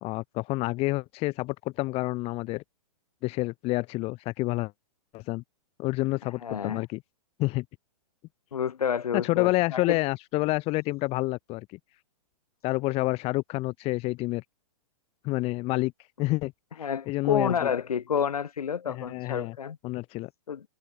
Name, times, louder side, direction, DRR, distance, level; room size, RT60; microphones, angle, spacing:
voice 1, 0.0-2.6 3.2-4.7 5.1-5.4 5.8-7.0 7.4-7.7 9.1-11.8 12.6-14.4 15.2-15.9 16.2-17.7 18.9-19.6 19.8-20.3, left 21 dB, 35° left, 2.0 m, -28 dB
voice 2, 6.4-6.8 8.5-10.0 16.8-19.8 20.5-20.6, left 7 dB, 85° left, 5.9 m, -29 dB
hypercardioid pair, 135°, 19 cm